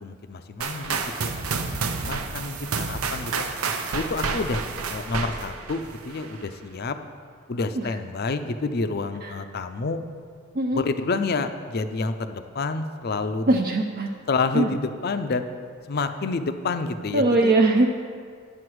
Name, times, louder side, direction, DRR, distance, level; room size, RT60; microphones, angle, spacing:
voice 1, 0.0-3.5 3.9-4.6 4.9-7.0 7.5-10.0 10.7-13.5 14.3-15.4 15.9-17.5, left 3 dB, 45° left, 9 dB, 0.5 m, -29 dB
sound 1, 0.6-6.5, right 4 dB, 80° right, 0.7 m, -30 dB
voice 2, 13.5-14.1 14.5-14.7 17.1-17.9, right 2 dB, 40° right, 2 dB, 0.4 m, -21 dB
10.5 x 7.8 x 4.7 m, 2.1 s
head